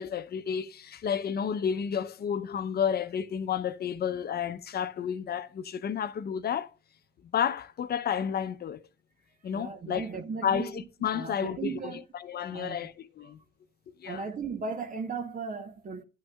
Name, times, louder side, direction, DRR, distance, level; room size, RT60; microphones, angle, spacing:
voice 1, 0.0-6.7 7.3-8.8 9.4-10.1 10.4-13.4 14.0-14.2, left 8 dB, 55° left, 0.7 m, -31 dB
voice 2, 9.5-10.8 11.1-12.0 12.5-12.9 14.0-16.0, right 5 dB, 40° right, 1.0 m, -36 dB
11.5 x 6.2 x 2.3 m
cardioid pair, 90°, 20 cm